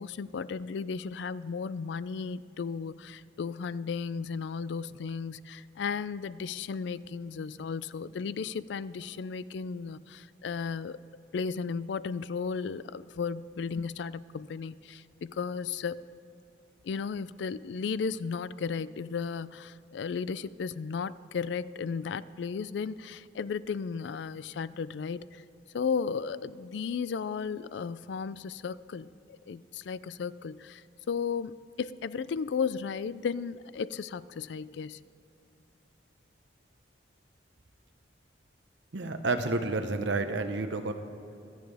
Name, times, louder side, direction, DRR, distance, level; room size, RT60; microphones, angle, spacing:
voice 1, 0.0-11.0 11.3-16.0 16.8-25.4 25.7-35.0, left 5 dB, 70° left, 17 dB, 0.4 m, -35 dB
voice 2, 38.9-40.9, right 3 dB, 80° right, 7 dB, 0.9 m, -30 dB
25.0 x 9.1 x 3.4 m, 2.8 s
head